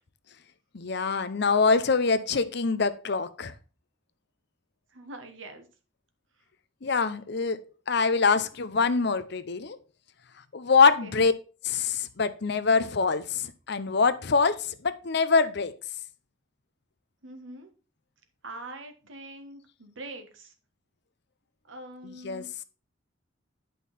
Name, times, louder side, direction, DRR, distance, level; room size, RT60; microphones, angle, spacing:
voice 1, 0.7-3.5 6.8-9.8 10.5-11.3 11.6-15.8 22.0-22.5, left 4 dB, 60° left, 0.7 m, -24 dB
voice 2, 4.9-5.7 11.0-11.2 17.2-17.7 18.4-20.5 21.7-22.5, right 2 dB, 75° right, 1.4 m, -43 dB
9.4 x 5.5 x 4.2 m
head